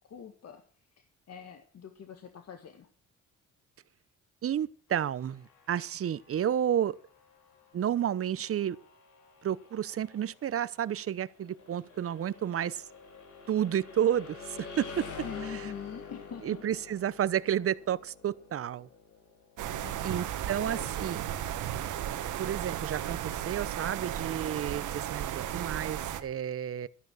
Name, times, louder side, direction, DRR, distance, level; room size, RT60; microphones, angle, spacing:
voice 1, 0.1-0.6 1.0-2.9 15.2-16.6 19.7-20.9, left 7 dB, 55° left, 1.9 m, -45 dB
voice 2, 4.4-7.0 7.7-8.8 9.4-12.8 13.5-15.1 16.4-18.9 20.0-21.2 22.4-26.9, right 10 dB, 50° right, 0.8 m, -31 dB
sound 1, 4.9-20.7, left 5 dB, 85° left, 4.2 m, -48 dB
sound 2, 19.6-26.2, right 11 dB, 85° right, 1.5 m, -35 dB
13.0 x 10.5 x 6.3 m
cardioid pair, 90°, 30 cm